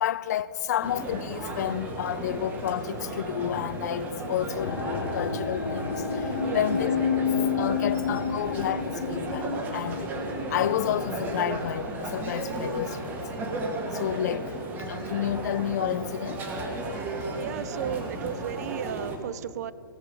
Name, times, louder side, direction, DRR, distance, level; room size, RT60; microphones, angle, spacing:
voice 1, 0.0-6.9 7.2-7.3 7.6-10.1 10.5-13.2 13.9-14.5 14.9-16.4, left 11 dB, 50° left, 0.4 m, -30 dB
sound 1, 0.8-19.2, right 2 dB, 15° right, 1.2 m, -34 dB
sound 2, 4.6-15.7 16.0-16.6 17.2-17.3, left 6 dB, 75° left, 1.3 m, -32 dB
voice 2, 6.4-6.7 17.4-19.7, right 11 dB, 50° right, 0.4 m, -34 dB
17.0 x 6.7 x 6.2 m
hypercardioid pair, 155°, 12 cm